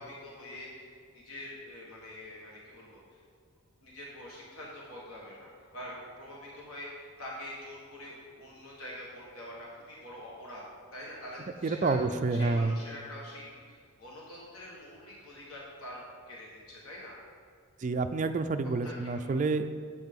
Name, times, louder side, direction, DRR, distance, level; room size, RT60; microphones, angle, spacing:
voice 1, 0.0-3.2 3.8-10.6 10.9-12.0 12.3-17.2 18.8-19.4, left 1 dB, 75° left, -4 dB, 1.3 m, -45 dB
voice 2, 11.6-12.7 17.8-19.7, right 3 dB, 35° right, 8 dB, 0.3 m, -28 dB
7.9 x 7.7 x 3.6 m, 2.2 s
head